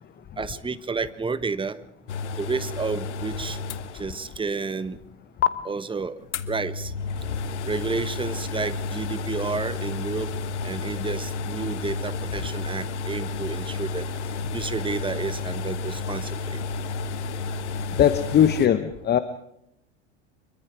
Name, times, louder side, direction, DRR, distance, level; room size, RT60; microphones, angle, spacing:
voice 1, 0.4-1.8 2.4-3.6 3.9-5.0 5.6-6.2 6.5-6.9 7.7-10.3 10.6-14.1 14.5-16.6, right 4 dB, 15° right, 14 dB, 1.3 m, -31 dB
sound 1, 2.1-4.4 4.7-4.8 5.4-5.5 6.3-18.7, left 4 dB, 70° left, 1.5 m, -31 dB
voice 2, 18.0-19.2, left 9 dB, 30° left, 12 dB, 1.2 m, -19 dB
25.5 x 23.0 x 5.0 m, 0.78 s
hypercardioid pair, 85°, 36 cm